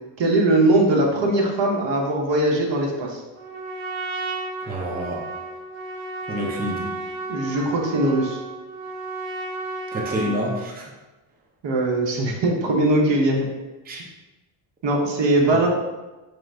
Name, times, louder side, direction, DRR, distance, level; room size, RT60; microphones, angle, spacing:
voice 1, 0.2-3.2 7.3-8.4 11.6-13.5 14.8-15.7, right 2 dB, 60° right, 0 dB, 0.9 m, -20 dB
Trumpet, 3.4-10.7, right 2 dB, 85° right, 0.9 m, -33 dB
voice 2, 4.7-5.2 6.3-6.9 9.9-10.9 13.8-14.0, equal, 20° right, -2 dB, 0.6 m, -28 dB
4.8 x 2.5 x 3.3 m, 1.1 s
cardioid pair, 110°, 50 cm